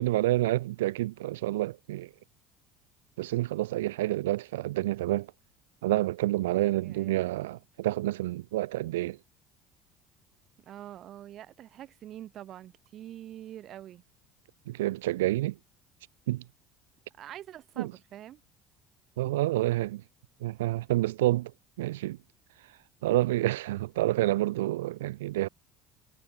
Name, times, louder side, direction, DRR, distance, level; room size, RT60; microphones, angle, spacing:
voice 1, 0.0-2.1 3.2-5.3 5.8-9.2 14.7-15.6 16.3-16.4 17.8-17.9 19.2-20.0 20.4-21.5 21.8-22.2 23.0-25.5, right 16 dB, 75° right, 0.5 m, -28 dB
voice 2, 6.8-7.2 10.6-14.0 17.2-18.4, right 12 dB, 50° right, 6.7 m, -45 dB
hypercardioid pair, 60°, 0 cm